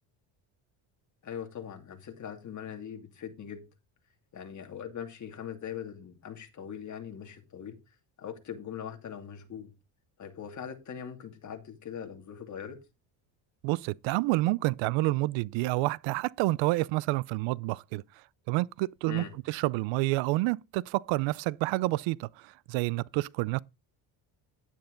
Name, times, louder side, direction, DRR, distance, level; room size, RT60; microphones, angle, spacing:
voice 1, 1.2-3.7 4.3-7.8 8.2-9.7 10.2-12.8 19.1-19.3, left 8 dB, 35° left, 2.6 m, -41 dB
voice 2, 13.6-18.0 18.5-23.6, right 20 dB, 70° right, 0.6 m, -29 dB
10.5 x 9.0 x 3.8 m
cardioid pair, 115°, 47 cm